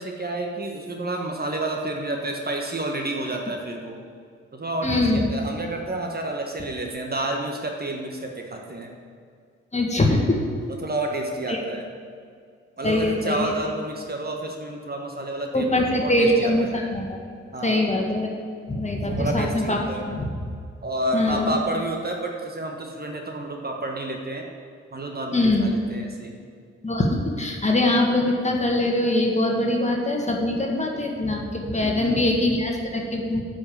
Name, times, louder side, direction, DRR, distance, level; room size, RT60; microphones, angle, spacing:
voice 1, 0.0-4.0 4.5-8.9 10.8-11.9 12.8-16.7 17.5-17.8 19.0-20.0 20.8-24.4 24.9-26.3 31.8-32.3, right 1 dB, 30° right, 1 dB, 1.4 m, -30 dB
voice 2, 4.8-5.2 9.7-10.4 11.5-11.6 12.8-13.5 15.5-17.2 17.6-18.3 18.7-19.8 20.1-20.3 21.1-21.6 25.3-25.7 26.8-33.4, left 1 dB, 20° left, 1 dB, 1.9 m, -23 dB
9.1 x 5.3 x 7.3 m, 2.2 s
hypercardioid pair, 40°, 30 cm